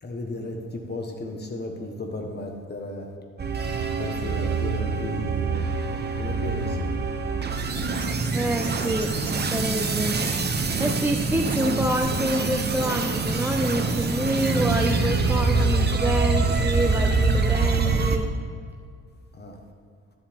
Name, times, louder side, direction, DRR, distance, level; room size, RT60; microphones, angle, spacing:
voice 1, 0.0-3.1 3.8-5.7 6.2-6.9 19.3-19.6, left 2 dB, 35° left, 3 dB, 1.4 m, -35 dB
sound 1, 3.4-18.2, right 3 dB, 35° right, 1.0 m, -25 dB
voice 2, 8.3-10.2 10.4-18.3, right 1 dB, 5° right, 3 dB, 0.5 m, -27 dB
13.0 x 7.5 x 3.6 m, 2.1 s
cardioid pair, 90°, 30 cm